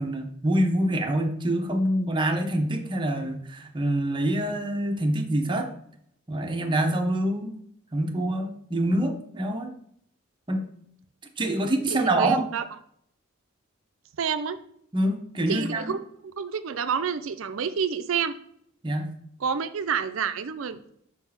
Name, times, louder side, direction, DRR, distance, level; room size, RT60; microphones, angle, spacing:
voice 1, 0.0-5.7 6.3-7.5 7.9-9.7 10.5-10.6 11.4-12.5 14.9-15.9 18.8-19.1, right 1 dB, 25° right, 3 dB, 0.8 m, -26 dB
voice 2, 11.9-12.6 14.2-14.6 15.5-18.3 19.4-20.8, right 6 dB, 75° right, 11 dB, 0.5 m, -29 dB
4.5 x 4.1 x 5.7 m, 0.69 s
head